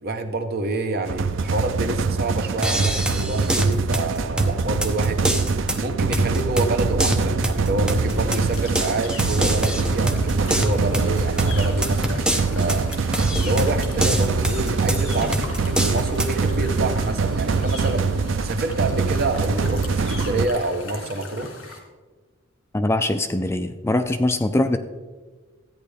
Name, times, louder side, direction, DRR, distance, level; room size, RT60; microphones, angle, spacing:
voice 1, 0.0-5.4 5.7-12.9 13.4-21.5, right 2 dB, 50° right, 6 dB, 1.0 m, -27 dB
sound 1, 1.1-20.5, right 4 dB, 70° right, 0.5 m, -24 dB
sound 2, 2.6-16.4, right 1 dB, 5° right, 0.8 m, -26 dB
sound 3, 8.0-21.8, left 4 dB, 75° left, 2.3 m, -40 dB
voice 2, 22.7-24.8, left 1 dB, 15° left, 8 dB, 0.4 m, -22 dB
13.5 x 9.3 x 3.4 m, 1.4 s
head